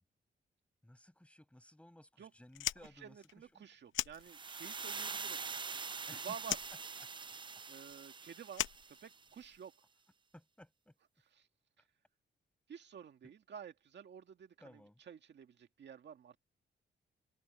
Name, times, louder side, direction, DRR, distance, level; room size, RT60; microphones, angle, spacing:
voice 1, 0.8-3.2 3.5-3.7 6.1-6.3 7.0-7.1 10.3-10.9 13.2-13.3 14.6-15.0, left 1 dB, 5° left, 5.7 m, -59 dB
Fire, 2.5-4.8 5.1-6.1 6.4-9.6, left 12 dB, 85° left, 0.7 m, -41 dB
voice 2, 3.0-5.4 6.1-6.6 7.7-9.7 11.3-11.5 12.7-14.8 15.1-16.4, right 7 dB, 65° right, 2.0 m, -51 dB
sound 1, 4.2-9.3, right 5 dB, 25° right, 0.4 m, -44 dB
open air
cardioid pair, 90°, 19 cm